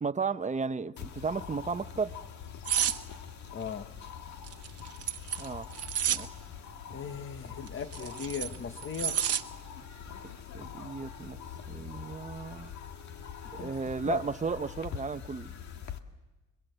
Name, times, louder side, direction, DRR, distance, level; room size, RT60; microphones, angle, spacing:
voice 1, 0.0-2.1 5.4-5.7 6.1-6.3 10.5-11.4 11.7-12.7 13.5-15.5, right 4 dB, 25° right, 12 dB, 0.9 m, -34 dB
sound 1, 1.0-16.0, left 8 dB, 70° left, 1.7 m, -44 dB
sound 2, 2.7-3.0 4.4-6.3 7.7-9.4 9.8-10.1, right 9 dB, 55° right, 1.2 m, -30 dB
voice 2, 3.5-4.0 6.9-9.3 13.6-13.7 14.0-14.2, left 6 dB, 40° left, 9 dB, 1.5 m, -38 dB
26.5 x 22.0 x 8.1 m, 1.1 s
cardioid pair, 90°, 30 cm